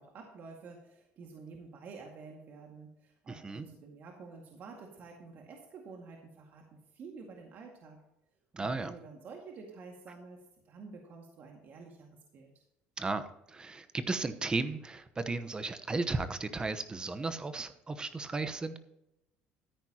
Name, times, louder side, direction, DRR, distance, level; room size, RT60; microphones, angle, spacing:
voice 1, 0.0-8.0 8.6-12.1 12.3-12.6, right 4 dB, 55° right, 1 dB, 2.0 m, -50 dB
voice 2, 3.3-3.7 8.5-8.9 13.0-18.8, right 3 dB, 20° right, 11 dB, 1.0 m, -35 dB
13.5 x 9.7 x 2.9 m, 0.87 s
cardioid pair, 115°, 4 cm